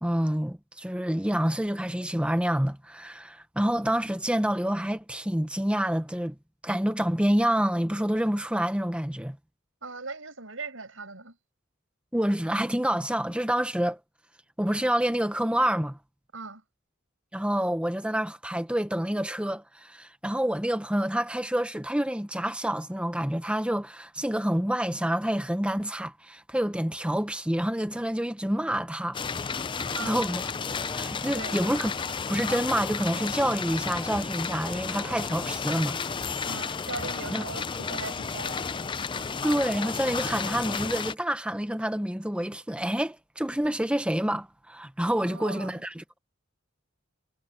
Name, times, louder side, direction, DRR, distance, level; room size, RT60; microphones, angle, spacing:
voice 1, 0.0-6.3 6.6-9.4 12.1-14.0 14.6-16.0 17.3-29.2 30.0-30.4 30.9-36.3 37.3-37.4 39.4-46.0, equal, 5° right, 0.9 m, -28 dB
voice 2, 9.8-11.4 16.3-16.6 29.9-30.2 31.3-31.6 36.4-38.7 45.2-45.8, right 3 dB, 75° right, 5.6 m, -39 dB
sound 1, 29.1-41.1, left 5 dB, 25° left, 0.5 m, -32 dB
head